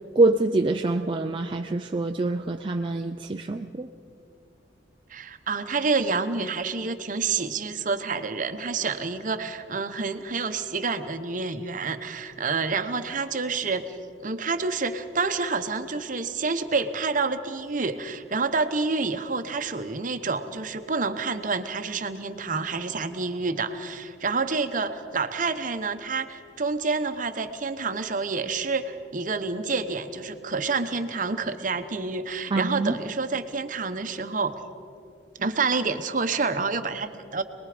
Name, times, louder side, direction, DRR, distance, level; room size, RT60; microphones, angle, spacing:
voice 1, 0.2-3.9 32.5-33.0, right 2 dB, 30° right, 3 dB, 0.5 m, -25 dB
voice 2, 5.1-14.0 14.2-34.6 35.4-37.4, right 4 dB, 45° right, 9 dB, 1.0 m, -28 dB
26.5 x 20.5 x 5.1 m, 2.5 s
head